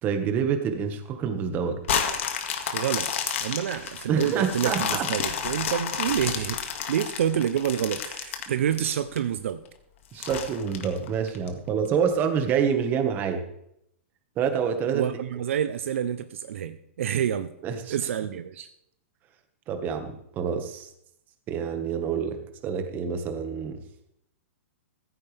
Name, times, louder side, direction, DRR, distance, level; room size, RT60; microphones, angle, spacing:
voice 1, 0.0-1.8 4.1-5.1 10.1-13.4 14.4-15.1 17.6-17.9 19.7-20.9 21.5-22.4 22.6-23.8, right 7 dB, 25° right, 6 dB, 1.7 m, -27 dB
sound 1, 1.8-9.2 9.7-9.8 10.2-11.5 12.0-12.1, left 7 dB, 65° left, 2.2 m, -30 dB
voice 2, 2.7-3.1 3.4-6.6 6.9-9.6 14.9-17.5 17.9-18.7, right 9 dB, 70° right, 11 dB, 0.8 m, -28 dB
15.0 x 14.0 x 3.5 m, 0.75 s
hypercardioid pair, 150°, 7 cm